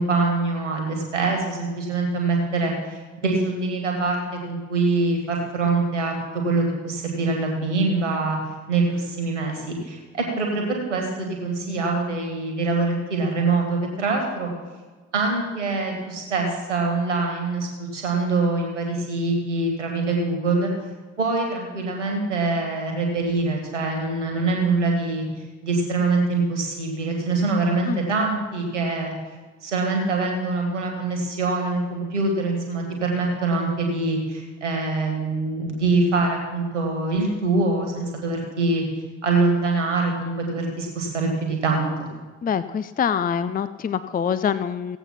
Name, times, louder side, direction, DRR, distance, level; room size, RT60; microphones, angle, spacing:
voice 1, 0.0-6.1 6.4-8.4 8.7-14.5 15.1-20.7 21.2-25.2 25.6-29.1 29.6-38.8 39.2-42.1, right 3 dB, 85° right, 1 dB, 2.1 m, -24 dB
voice 2, 42.4-45.0, left 7 dB, 25° left, 14 dB, 0.5 m, -25 dB
16.5 x 8.2 x 5.8 m, 1.4 s
figure-of-eight pair, 40°, 35 cm